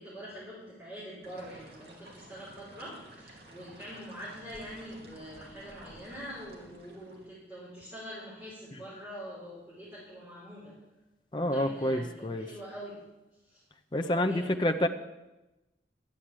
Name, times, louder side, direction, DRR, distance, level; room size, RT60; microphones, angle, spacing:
voice 1, 0.0-10.7 11.3-13.0 13.5-13.6 14.0-14.5, equal, 15° right, -11 dB, 5.2 m, -44 dB
sound 1, 1.2-7.3, right 1 dB, 65° right, 2.5 m, -52 dB
voice 2, 11.3-12.5 13.9-14.9, left 1 dB, 25° left, 6 dB, 0.7 m, -28 dB
11.5 x 7.8 x 8.8 m, 1.0 s
head